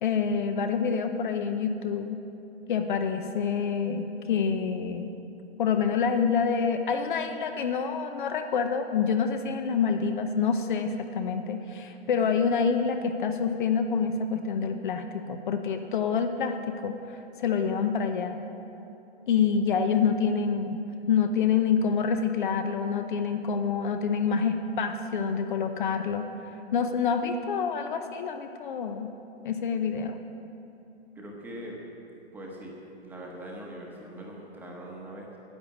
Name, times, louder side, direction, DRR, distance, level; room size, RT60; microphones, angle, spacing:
voice 1, 0.0-2.2 2.7-5.1 5.6-18.4 19.3-20.8 21.1-26.3 26.7-29.1 29.4-30.2, left 6 dB, 45° left, 7 dB, 0.7 m, -27 dB
voice 2, 31.1-31.8 32.3-32.8 33.0-35.4, right 1 dB, 5° right, -2 dB, 1.0 m, -41 dB
10.5 x 8.4 x 7.2 m, 2.9 s
hypercardioid pair, 155°, 34 cm